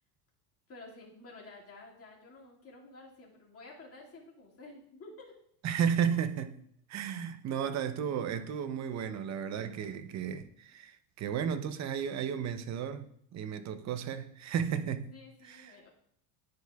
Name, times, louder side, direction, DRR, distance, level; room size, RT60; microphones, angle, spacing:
voice 1, 0.7-5.3 15.1-15.9, left 2 dB, 30° left, 2.1 m, -51 dB
voice 2, 5.6-6.6 6.9-15.1 15.4-15.8, right 8 dB, 40° right, 0.6 m, -33 dB
10.5 x 4.7 x 2.3 m
supercardioid pair, 115°, 44 cm